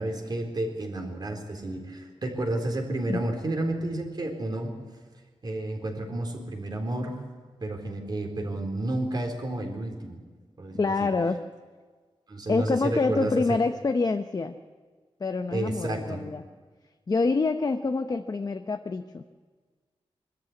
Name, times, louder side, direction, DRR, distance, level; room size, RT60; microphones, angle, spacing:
voice 1, 0.0-4.7 5.4-7.2 7.6-10.2 10.6-11.1 12.3-13.6 15.5-16.2, right 1 dB, 45° right, 2 dB, 4.0 m, -31 dB
voice 2, 10.7-11.4 12.5-14.5 15.2-16.4 17.1-19.2, left 3 dB, 40° left, 7 dB, 0.8 m, -26 dB
22.5 x 13.5 x 9.7 m, 1.5 s
wide cardioid pair, 115°, 10 cm